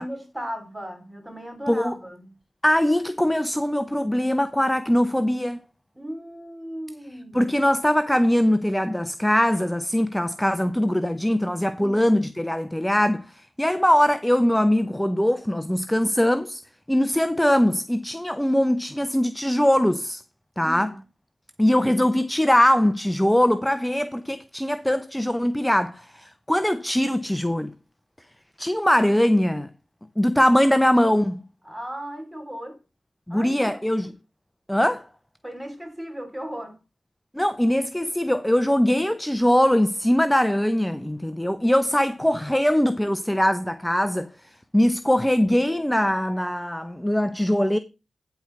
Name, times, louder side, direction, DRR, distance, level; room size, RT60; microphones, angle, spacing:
voice 1, 0.0-2.3 5.9-7.4 11.8-12.1 20.6-21.0 31.6-32.8 33.3-33.8 35.4-36.8, equal, 10° right, 3.2 m, -36 dB
voice 2, 2.6-5.6 7.3-16.6 16.9-20.2 20.6-20.9 21.6-27.7 28.6-29.7 30.2-31.4 33.3-34.1 34.7-35.0 37.3-44.3 44.7-47.8, equal, 10° left, 0.7 m, -21 dB
10.5 x 4.6 x 5.8 m
cardioid pair, 45°, 0 cm